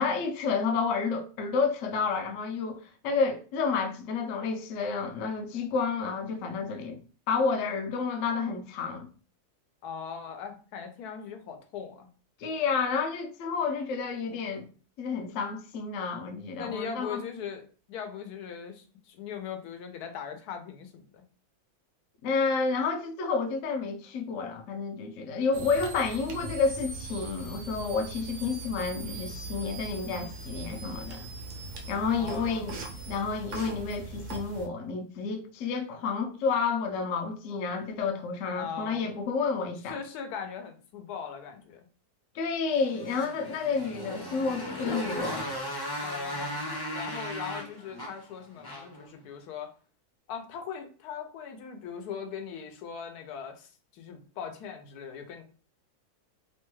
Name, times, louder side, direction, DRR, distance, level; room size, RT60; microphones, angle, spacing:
voice 1, 0.0-7.0 7.3-9.1 12.4-14.7 15.0-17.2 22.2-31.3 31.9-40.0 42.3-45.5, left 5 dB, 70° left, 0.8 m, -30 dB
voice 2, 9.8-12.1 16.5-21.2 32.2-32.7 38.6-39.1 39.9-41.9 46.0-46.5 46.9-49.7 50.3-55.4, left 7 dB, 85° left, 1.1 m, -40 dB
sound 1, 25.5-34.7, right 3 dB, 80° right, 1.2 m, -40 dB
Motorcycle, 42.7-49.1, equal, 25° left, 0.5 m, -36 dB
3.0 x 2.2 x 3.0 m
omnidirectional pair, 1.6 m